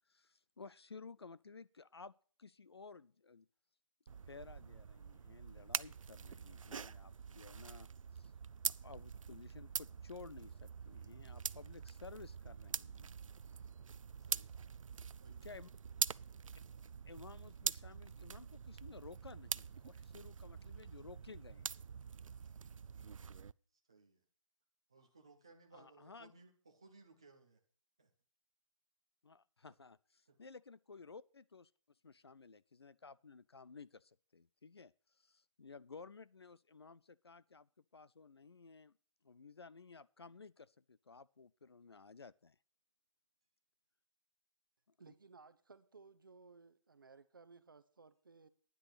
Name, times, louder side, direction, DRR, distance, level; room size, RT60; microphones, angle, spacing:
voice 1, 0.1-2.1 2.4-3.5 4.2-8.3 8.6-13.1 15.4-15.7 17.0-21.7 22.3-22.5 25.7-26.3 29.2-31.7 32.0-38.9 39.2-42.6, left 4 dB, 50° left, 0.4 m, -55 dB
sound 1, 4.1-23.5, right 6 dB, 75° right, 0.4 m, -45 dB
voice 2, 14.3-14.7 15.2-15.5 22.1-22.2 23.9-24.2 24.9-27.6 28.0-28.1 29.6-29.7 30.3-30.4, right 3 dB, 10° right, 0.5 m, -63 dB
voice 3, 45.0-48.5, right 4 dB, 40° right, 0.9 m, -60 dB
10.0 x 6.4 x 7.5 m
hypercardioid pair, 175°, 17 cm